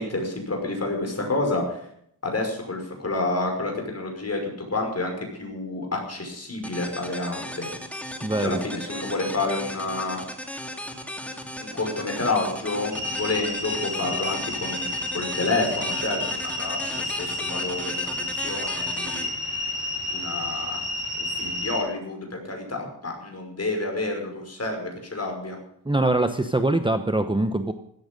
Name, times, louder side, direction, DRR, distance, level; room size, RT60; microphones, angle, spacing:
voice 1, 0.0-1.8 2.2-7.7 8.4-10.2 11.6-19.3 20.1-20.8 21.2-25.6, left 2 dB, 35° left, 2 dB, 5.8 m, -29 dB
sound 1, 6.6-20.3, equal, 5° left, 2.4 m, -37 dB
voice 2, 8.2-8.6 25.8-27.7, right 2 dB, 10° right, 8 dB, 0.9 m, -23 dB
sound 2, 12.9-21.8, left 2 dB, 40° right, 5.4 m, -30 dB
16.0 x 13.5 x 5.4 m, 0.70 s
wide cardioid pair, 105°, 41 cm